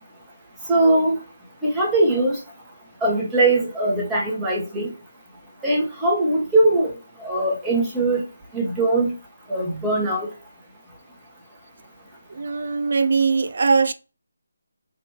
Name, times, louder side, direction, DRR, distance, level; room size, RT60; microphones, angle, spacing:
voice 1, 0.7-1.2 1.6-2.4 3.0-4.9 5.6-6.9 7.2-8.2 8.5-9.1 9.5-10.3, right 2 dB, 10° right, 0.9 m, -20 dB
voice 2, 12.3-13.9, right 4 dB, 50° right, 0.3 m, -20 dB
3.2 x 2.5 x 3.0 m
figure-of-eight pair, 155°, 0 cm